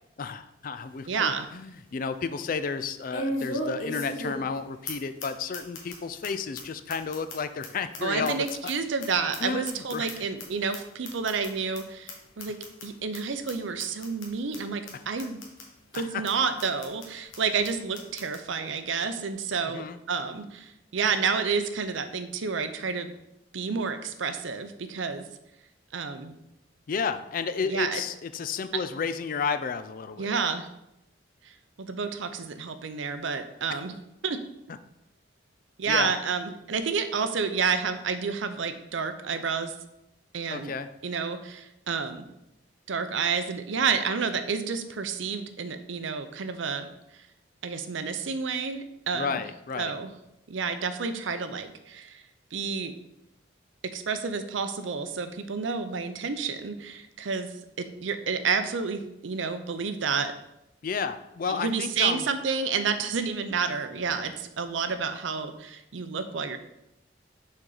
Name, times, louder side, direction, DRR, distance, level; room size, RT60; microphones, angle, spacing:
voice 1, 0.2-8.4 9.4-10.1 15.9-16.1 19.7-20.0 26.9-30.3 33.7-33.8 35.9-36.1 40.5-40.9 49.1-49.9 60.8-62.3, left 5 dB, 45° left, 11 dB, 0.4 m, -32 dB
sound 1, 0.7-0.8 1.3-1.4 3.1-4.6 4.9-5.0 5.2-5.3 5.5-5.9 6.2-6.3 6.6-6.7 6.9-9.1 9.3-10.4 10.7-10.8 11.0-11.5 11.7-11.8 12.1-12.2 12.4-12.8 13.1-13.2 13.5-13.6 13.8-14.3 14.5-14.6 14.9-15.0 15.2-15.6 15.9-16.0 16.3-16.4 16.6-17.1 17.3-17.4 17.6-17.7 17.9-18.4, left 1 dB, 90° left, 1.4 m, -35 dB
voice 2, 1.1-1.5 8.0-12.6 12.8-15.4 15.9-23.1 23.5-25.3 25.9-26.4 27.6-28.0 30.2-30.7 31.4-31.5 31.8-34.0 34.2-34.4 35.8-39.7 40.3-40.7 41.0-42.3 42.9-46.9 47.6-49.4 49.8-50.1 50.5-52.2 52.5-52.9 53.8-60.3 61.5-66.6, right 5 dB, 80° right, 9 dB, 0.6 m, -30 dB
6.3 x 4.4 x 3.9 m, 0.87 s
head